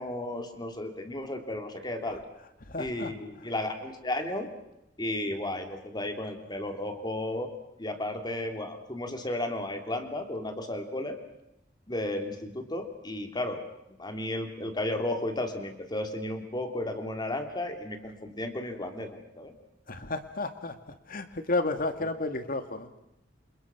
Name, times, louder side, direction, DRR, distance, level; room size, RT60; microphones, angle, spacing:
voice 1, 0.0-2.2 2.8-4.5 5.0-7.5 7.8-11.2 11.9-13.6 13.9-19.5 22.0-22.1, left 1 dB, 25° left, 5 dB, 3.2 m, -34 dB
voice 2, 2.7-3.1 19.9-20.8 21.1-22.9, left 2 dB, 50° left, 8 dB, 2.2 m, -32 dB
28.5 x 27.5 x 6.2 m, 0.86 s
head